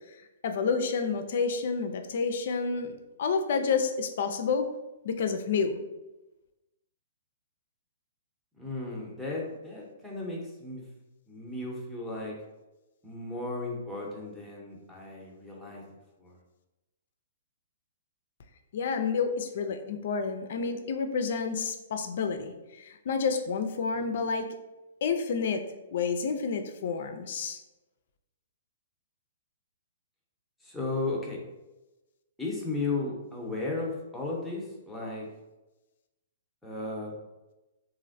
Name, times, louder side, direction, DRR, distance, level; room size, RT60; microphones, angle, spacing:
voice 1, 0.4-4.6 5.0-5.8 18.7-24.5 25.0-25.6 25.9-27.6, left 5 dB, 60° left, 7 dB, 0.4 m, -29 dB
voice 2, 8.5-10.8 11.3-12.4 13.0-15.8 16.2-16.4 30.6-31.4 32.4-35.3 36.6-37.1, left 3 dB, ahead, -5 dB, 0.7 m, -35 dB
3.1 x 2.5 x 2.6 m, 1.0 s
hypercardioid pair, 135°, 0 cm